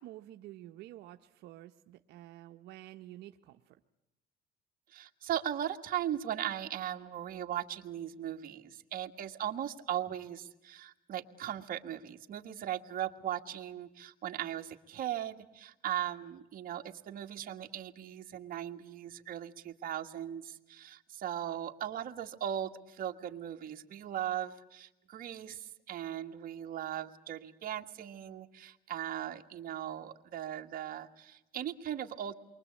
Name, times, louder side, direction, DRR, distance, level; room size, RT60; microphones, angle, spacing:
voice 1, 0.0-3.8, right 14 dB, 85° right, 5 dB, 1.0 m, -50 dB
voice 2, 4.9-32.3, right 11 dB, 60° right, 5 dB, 2.0 m, -38 dB
29.0 x 23.5 x 8.5 m, 0.96 s
cardioid pair, 110°, 17 cm